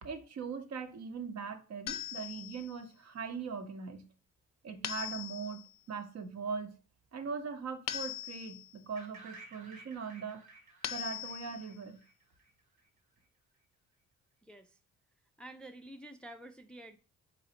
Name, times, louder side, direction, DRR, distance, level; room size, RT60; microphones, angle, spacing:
voice 1, 0.0-4.0 4.6-6.7 7.1-10.4 10.9-12.0, right 5 dB, 60° right, 0.8 m, -40 dB
sound 1, 1.9-2.8 4.8-5.7 7.9-8.8 10.8-11.8, left 12 dB, 60° left, 0.5 m, -40 dB
sound 2, 9.0-12.8, right 3 dB, 75° right, 1.2 m, -55 dB
voice 2, 14.4-14.7 15.4-17.0, right 1 dB, 5° left, 0.4 m, -49 dB
4.2 x 3.9 x 2.8 m
cardioid pair, 90°, 30 cm